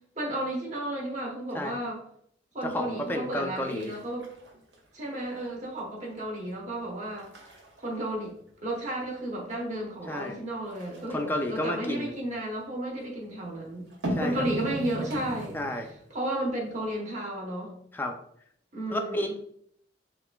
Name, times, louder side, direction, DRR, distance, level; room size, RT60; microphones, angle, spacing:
voice 1, 0.2-2.0 2.5-4.2 4.9-7.3 7.8-8.3 8.6-13.9 14.1-15.6 16.1-17.7 18.7-19.3, right 1 dB, 40° right, -1 dB, 1.0 m, -33 dB
voice 2, 2.6-3.9 10.1-10.4 11.1-12.1 14.1-14.5 15.5-15.9 17.9-18.2 18.9-19.4, left 1 dB, 10° left, 3 dB, 0.4 m, -31 dB
sound 1, 3.0-3.4 3.7-5.4 5.8-6.2 6.7-6.8 7.2-9.1 10.7-12.5 13.8-16.1 16.4-16.5, right 1 dB, 65° right, 0.8 m, -38 dB
5.7 x 2.5 x 2.3 m, 0.67 s
head